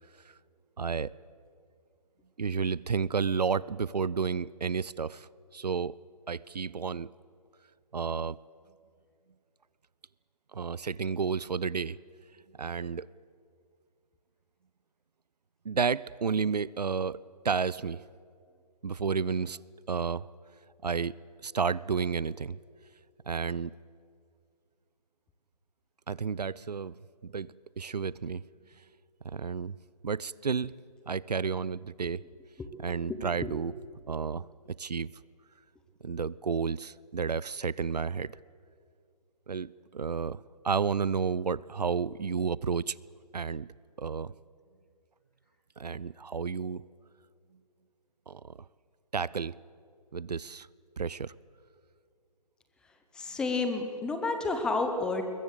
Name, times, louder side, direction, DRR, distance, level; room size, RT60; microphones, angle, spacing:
voice 1, 0.8-1.1 2.4-5.3 5.5-6.0 6.3-7.1 7.9-8.4 10.5-12.0 12.6-13.1 15.6-18.0 18.8-19.6 19.9-20.3 20.8-21.1 21.4-22.6 23.3-23.7 26.1-28.4 29.2-29.8 30.0-30.7 31.1-32.2 32.8-33.7 34.1-34.5 34.8-35.1 36.0-38.3 39.5-43.0 43.3-43.7 44.0-44.3 45.8-46.8 48.3-48.5 49.1-49.5 50.1-50.7 51.0-51.3, right 5 dB, 75° right, 21 dB, 0.6 m, -31 dB
voice 2, 33.1-33.5 53.1-55.2, left 3 dB, 5° left, 6 dB, 0.9 m, -31 dB
22.0 x 20.5 x 8.2 m, 2.3 s
figure-of-eight pair, 150°, 21 cm